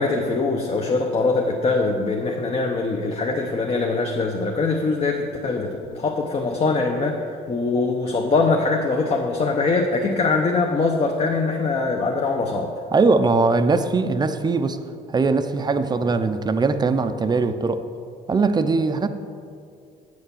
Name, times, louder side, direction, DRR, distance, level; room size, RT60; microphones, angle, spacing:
voice 1, 0.0-7.2 7.5-12.7, left 3 dB, 35° left, 1 dB, 0.9 m, -22 dB
voice 2, 12.9-14.8 15.1-17.8 18.3-19.1, right 3 dB, 25° right, 9 dB, 0.5 m, -20 dB
8.0 x 6.5 x 7.1 m, 2.4 s
cardioid pair, 110°, 17 cm